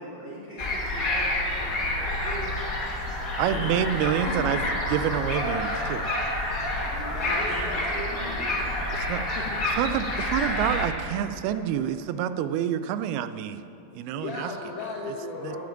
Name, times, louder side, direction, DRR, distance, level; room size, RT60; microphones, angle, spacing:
voice 1, 0.0-2.5 3.5-3.8 6.7-8.5 15.4-15.6, right 1 dB, 15° left, -8 dB, 2.7 m, -40 dB
sound 1, 0.6-10.9, left 1 dB, 90° left, 0.7 m, -28 dB
voice 2, 3.4-6.0 8.9-9.3 9.8-13.6 14.0-14.5 15.4-15.6, right 10 dB, 80° right, 12 dB, 2.4 m, -27 dB
voice 3, 7.1-7.9 9.4-9.7 14.1-15.6, left 3 dB, 70° left, -4 dB, 3.0 m, -36 dB
10.0 x 9.4 x 8.7 m, 2.9 s
omnidirectional pair, 4.6 m